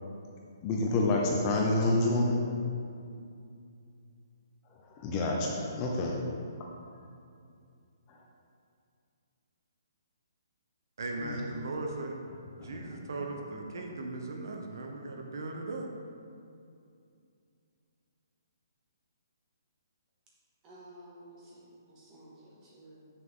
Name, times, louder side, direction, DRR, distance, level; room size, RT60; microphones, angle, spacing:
voice 1, 0.6-2.4 5.0-6.1 11.2-11.4 12.6-12.8, left 2 dB, 20° left, -1 dB, 0.6 m, -28 dB
voice 2, 11.0-12.2 12.6-15.9, right 2 dB, 65° right, 2 dB, 1.0 m, -38 dB
voice 3, 20.6-23.1, right 1 dB, 15° right, -7 dB, 1.7 m, -53 dB
7.6 x 6.5 x 3.8 m, 2.4 s
hypercardioid pair, 170°, 2 cm